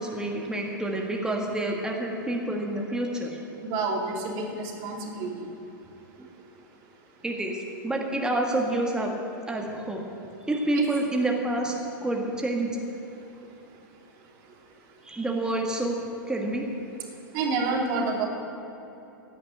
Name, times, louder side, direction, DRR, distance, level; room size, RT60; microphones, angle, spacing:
voice 1, 0.0-3.4 6.2-6.3 7.2-9.1 9.5-10.0 10.5-12.8 15.0-16.6, right 1 dB, 5° right, 0 dB, 1.4 m, -28 dB
voice 2, 3.6-5.3 10.7-10.9 17.3-18.3, right 3 dB, 50° right, 0 dB, 2.8 m, -28 dB
16.0 x 5.9 x 9.1 m, 3.0 s
hypercardioid pair, 105°, 11 cm